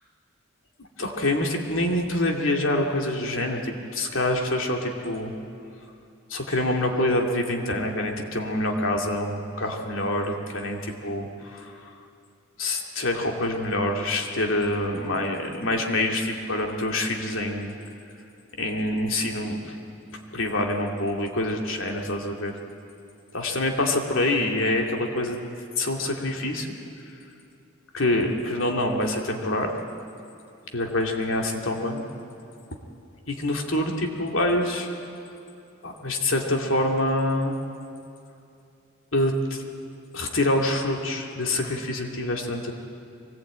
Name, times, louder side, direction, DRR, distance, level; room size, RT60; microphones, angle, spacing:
voice 1, 1.0-5.3 6.3-11.7 12.6-17.8 18.6-19.8 20.3-22.6 23.3-25.4 25.8-26.7 27.9-29.8 30.7-32.0 33.3-34.9 35.8-37.6 39.1-39.6 40.1-42.7, left 1 dB, 70° left, 1 dB, 2.5 m, -26 dB
23.5 x 19.5 x 8.8 m, 2.6 s
head